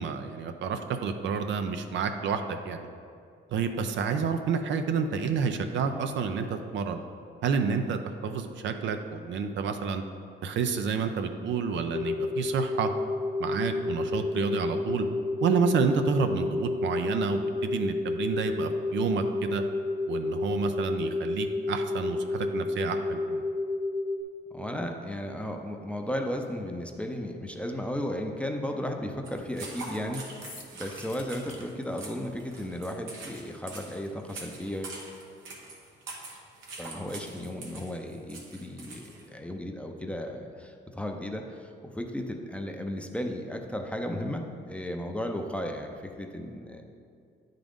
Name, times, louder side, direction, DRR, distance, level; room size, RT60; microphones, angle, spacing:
voice 1, 0.0-2.9 3.5-7.0 7.4-10.0 10.4-12.9 13.4-15.1 15.4-19.6 20.1-23.4, right 5 dB, 70° right, 7 dB, 0.5 m, -29 dB
sound 1, 11.9-24.2, left 2 dB, 65° left, 0.5 m, -30 dB
voice 2, 24.5-35.0 36.8-46.8, left 1 dB, 5° left, 3 dB, 0.5 m, -35 dB
sound 2, 29.3-39.3, right 3 dB, 90° right, 1.1 m, -44 dB
sound 3, 30.4-31.6, left 4 dB, 45° left, 1.0 m, -47 dB
8.8 x 3.8 x 3.5 m, 2.3 s
cardioid pair, 90°, 20 cm